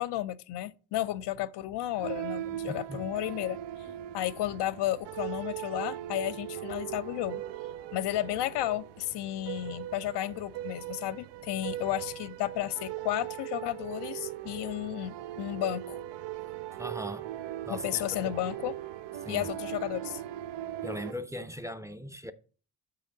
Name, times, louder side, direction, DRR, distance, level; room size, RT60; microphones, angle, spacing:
voice 1, 0.0-3.6 4.1-7.4 7.9-16.0 17.7-18.7 19.3-20.2, left 13 dB, 65° left, 0.5 m, -33 dB
sound 1, 1.9-21.1, right 13 dB, 70° right, 0.6 m, -39 dB
voice 2, 2.7-3.1 16.8-17.3 17.7-18.4 19.2-19.5 20.8-22.3, equal, 5° right, 0.6 m, -39 dB
6.9 x 5.7 x 3.8 m
supercardioid pair, 55°, 44 cm